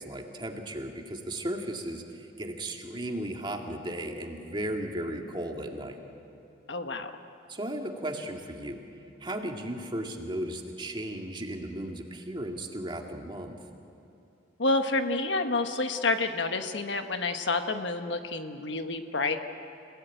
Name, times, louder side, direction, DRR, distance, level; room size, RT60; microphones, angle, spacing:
voice 1, 0.0-6.0 7.5-8.8 9.2-13.6, right 1 dB, 25° right, 2 dB, 2.1 m, -35 dB
voice 2, 6.7-7.1 14.6-19.4, left 3 dB, 65° left, 7 dB, 1.4 m, -29 dB
30.0 x 17.5 x 9.1 m, 2.8 s
head